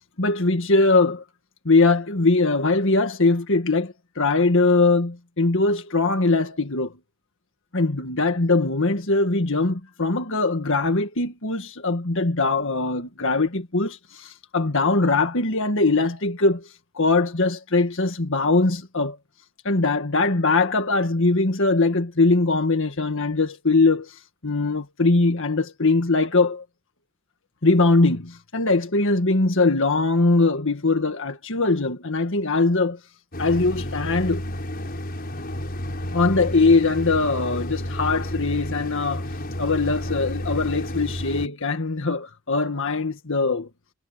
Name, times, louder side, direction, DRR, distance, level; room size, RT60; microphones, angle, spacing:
voice 1, 0.2-1.2 1.7-6.9 7.7-16.7 17.0-19.2 19.7-24.1 24.4-26.6 27.6-33.0 33.4-34.5 36.1-39.2 39.6-43.7, left 3 dB, 60° left, 1.9 m, -21 dB
sound 1, 33.3-41.5, left 1 dB, 45° left, 5.9 m, -31 dB
head